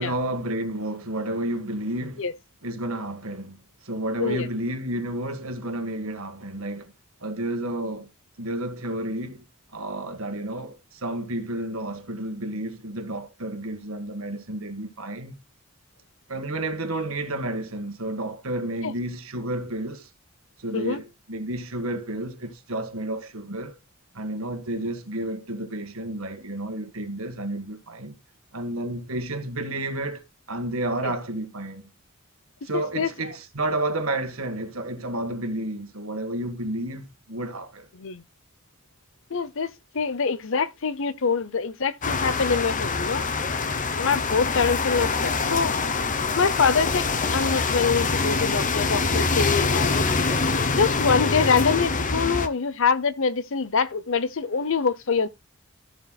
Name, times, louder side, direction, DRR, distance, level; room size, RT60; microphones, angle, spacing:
voice 1, 0.0-2.3 2.6-6.9 7.2-8.1 8.4-9.4 9.7-15.3 16.3-20.1 20.6-23.8 24.1-28.2 28.5-31.9 32.6-37.9, right 1 dB, 75° right, 1.7 m, -31 dB
voice 2, 32.7-33.1 37.9-38.2 39.3-43.2 44.0-45.7 46.4-47.1 47.3-50.0 50.7-55.3, left 5 dB, 65° left, 0.8 m, -25 dB
sound 1, 42.0-52.5, left 4 dB, 40° left, 1.0 m, -25 dB
13.5 x 7.4 x 2.3 m
head